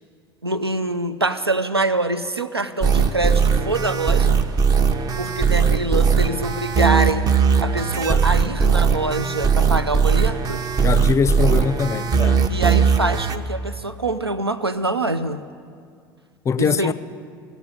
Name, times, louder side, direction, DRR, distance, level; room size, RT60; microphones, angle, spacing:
voice 1, 0.4-4.4 5.2-7.2 7.6-10.6 12.5-15.4 16.6-16.9, right 2 dB, 90° right, 0.5 m, -24 dB
sound 1, 2.8-13.4, right 6 dB, 30° right, 0.7 m, -19 dB
voice 2, 10.8-12.5 16.4-16.9, left 6 dB, 20° left, 0.4 m, -22 dB
15.5 x 7.0 x 9.6 m
figure-of-eight pair, 75°, 13 cm